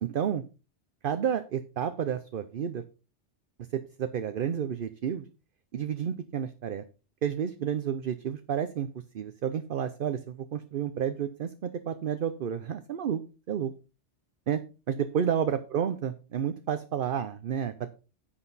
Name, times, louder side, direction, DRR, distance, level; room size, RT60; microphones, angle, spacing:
voice 1, 0.0-0.4 1.0-2.8 3.7-5.3 5.7-6.8 7.2-8.9 9.1-13.2 13.5-13.7 14.5-14.6 14.9-17.9, right 8 dB, 55° right, 11 dB, 0.7 m, -30 dB
9.8 x 7.8 x 4.0 m, 0.32 s
omnidirectional pair, 1.2 m